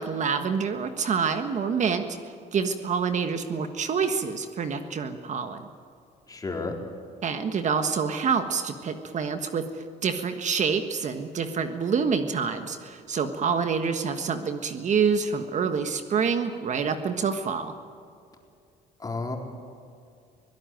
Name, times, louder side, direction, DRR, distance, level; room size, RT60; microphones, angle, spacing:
voice 1, 0.0-2.2 2.5-5.6 7.2-17.7, right 6 dB, 45° right, 7 dB, 1.5 m, -27 dB
voice 2, 6.3-6.7 19.0-19.4, left 3 dB, 20° left, 1 dB, 4.0 m, -31 dB
23.5 x 17.5 x 9.3 m, 2.4 s
cardioid pair, 110°, 17 cm